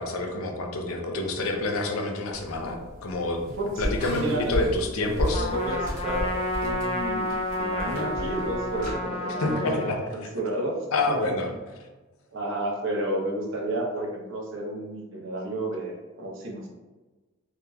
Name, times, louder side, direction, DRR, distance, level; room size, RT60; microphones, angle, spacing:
voice 1, 0.0-3.4 3.8-5.5 9.4-10.3 10.9-11.5, left 2 dB, 75° left, 3 dB, 0.5 m, -28 dB
sound 1, 2.3-9.0, left 1 dB, 35° right, 1.4 m, -34 dB
voice 2, 3.5-4.6 5.1-6.3 6.6-11.5 12.3-16.7, right 1 dB, 60° right, -2 dB, 0.8 m, -31 dB
Trumpet, 5.3-10.0, left 1 dB, 25° left, 0.3 m, -30 dB
3.6 x 2.9 x 2.2 m, 1.2 s
head